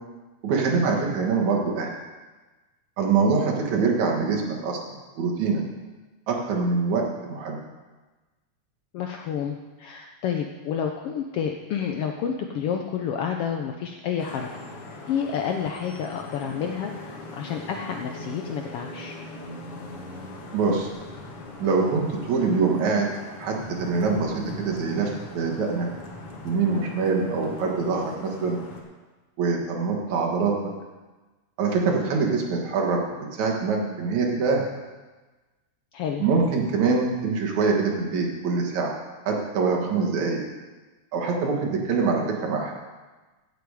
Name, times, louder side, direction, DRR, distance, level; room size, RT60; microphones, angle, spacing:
voice 1, 0.4-1.9 3.0-4.8 5.2-5.6 6.3-7.6 20.5-20.9 21.6-23.1 23.4-25.9 26.4-28.6 29.4-30.7 31.6-33.0 33.3-34.6 36.2-38.9 39.3-40.4 41.1-42.7, right 4 dB, 75° right, 0 dB, 2.9 m, -24 dB
voice 2, 8.9-14.5 15.1-19.1 35.9-36.3, left 7 dB, 75° left, 3 dB, 1.4 m, -29 dB
Vehicle horn car horn honking / Traffic noise roadway noise, 14.2-28.8, left 2 dB, 55° left, 2.2 m, -40 dB
16.0 x 7.1 x 4.9 m, 1.2 s
omnidirectional pair, 3.3 m